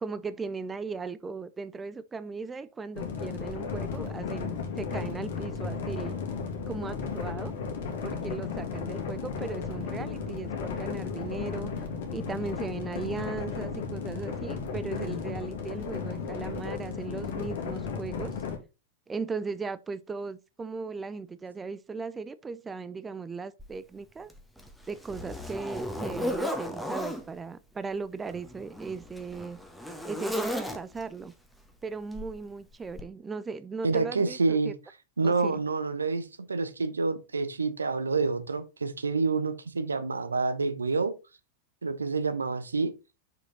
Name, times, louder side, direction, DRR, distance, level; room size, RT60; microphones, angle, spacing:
voice 1, 0.0-6.2 6.7-7.5 8.0-11.7 12.1-18.4 19.1-24.3 24.9-29.6 30.0-31.3 31.8-34.7 35.2-35.6, right 4 dB, 15° right, 0.4 m, -37 dB
sound 1, 3.0-18.6, left 5 dB, 55° left, 2.0 m, -34 dB
Zipper (clothing), 23.6-23.7 24.3-27.2 28.2-31.2 32.1-32.4 33.0-33.1, equal, ahead, 1.3 m, -35 dB
voice 2, 33.8-34.7 35.2-41.1 41.8-42.9, right 4 dB, 75° right, 0.9 m, -28 dB
6.2 x 5.1 x 4.0 m
figure-of-eight pair, 90°, 0 cm